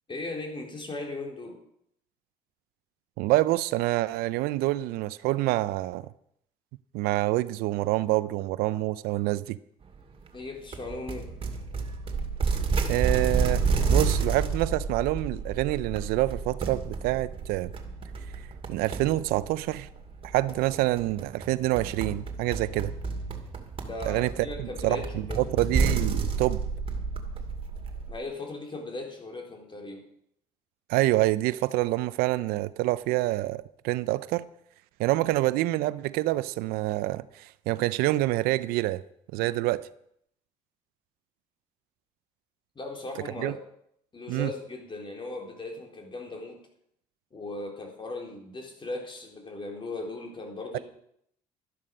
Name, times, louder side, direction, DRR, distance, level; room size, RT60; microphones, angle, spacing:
voice 1, 0.1-1.5 10.3-11.3 23.9-25.4 28.1-30.0 39.4-39.7 42.8-43.6 44.1-46.6 47.3-50.8, left 2 dB, 35° left, 4.1 m, -38 dB
voice 2, 3.2-6.1 6.9-9.6 12.9-17.7 18.7-19.9 20.2-22.9 24.1-24.3 24.6-25.0 25.4-26.6 30.9-34.5 35.0-39.0 39.3-39.8 43.4-43.5 44.3-44.5 50.7-50.8, right 17 dB, 85° right, 0.5 m, -27 dB
sound 1, 10.7-28.1, right 4 dB, 35° right, 2.3 m, -30 dB
13.0 x 11.5 x 5.4 m
supercardioid pair, 80°, 15 cm